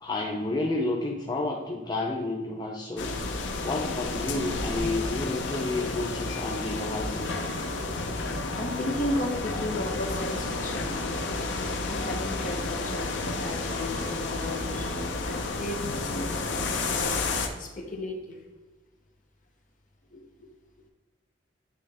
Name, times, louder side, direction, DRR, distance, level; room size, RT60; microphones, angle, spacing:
voice 1, 0.0-3.1 3.6-7.3, left 2 dB, 20° left, -1 dB, 0.5 m, -30 dB
sound 1, 3.0-17.5, left 3 dB, 70° left, 0.7 m, -31 dB
voice 2, 7.9-11.3 11.8-13.1 13.4-18.4 20.1-20.5, left 1 dB, 45° left, 2 dB, 1.0 m, -35 dB
8.6 x 3.3 x 3.4 m, 1.3 s
head